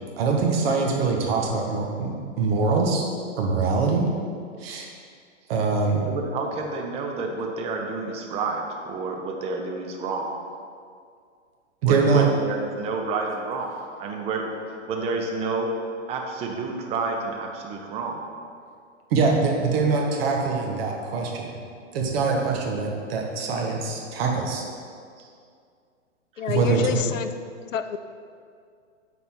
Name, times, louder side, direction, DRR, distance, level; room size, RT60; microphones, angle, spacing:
voice 1, 0.2-3.0 3.4-4.0 4.6-4.9 5.5-6.0 11.8-12.3 19.1-21.5 21.9-24.6 26.5-27.0, right 4 dB, 50° right, 0 dB, 1.3 m, -23 dB
voice 2, 6.1-10.3 11.8-13.7 14.0-15.8 16.1-18.2 25.2-25.3 26.3-26.6, right 3 dB, 15° right, 2 dB, 0.6 m, -29 dB
voice 3, 26.4-27.3 27.7-28.0, left 8 dB, 80° left, 10 dB, 0.5 m, -28 dB
8.6 x 4.1 x 3.8 m, 2.2 s
hypercardioid pair, 125°, 38 cm